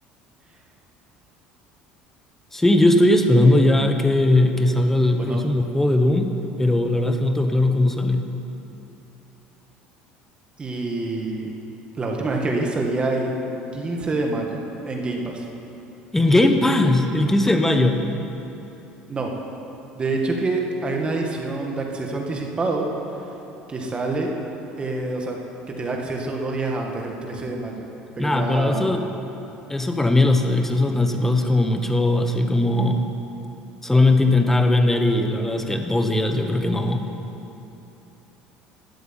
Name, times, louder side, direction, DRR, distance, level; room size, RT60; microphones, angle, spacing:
voice 1, 2.5-8.2 16.1-18.0 28.2-29.1 29.7-33.1 33.8-37.0, left 2 dB, 10° left, 6 dB, 1.3 m, -19 dB
voice 2, 10.6-11.5 11.9-13.3 13.7-15.5 19.1-19.4 19.9-22.9 23.2-23.3 23.7-24.3 24.8-25.4 25.7-27.9 28.2-29.0, right 2 dB, 25° right, 1 dB, 2.0 m, -26 dB
12.5 x 8.0 x 9.4 m, 3.0 s
supercardioid pair, 95°, 4 cm